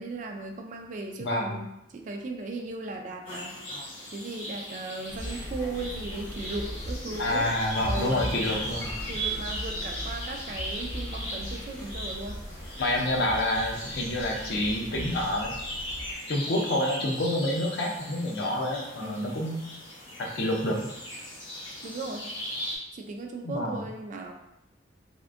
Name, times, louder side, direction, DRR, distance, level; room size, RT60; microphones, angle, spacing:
voice 1, 0.0-3.6 4.1-7.6 7.8-8.3 9.1-12.4 19.0-19.4 21.8-22.3 22.9-24.3, right 2 dB, 40° right, 3 dB, 0.3 m, -37 dB
voice 2, 1.2-1.6 7.2-8.9 12.8-15.5 16.3-19.6 20.2-20.9 23.4-23.8, left 1 dB, 60° left, 0 dB, 0.6 m, -28 dB
sound 1, 3.3-22.8, equal, 85° left, 1.1 m, -38 dB
sound 2, 5.1-16.1, equal, 15° left, 0.6 m, -38 dB
3.5 x 2.5 x 2.4 m, 0.86 s
head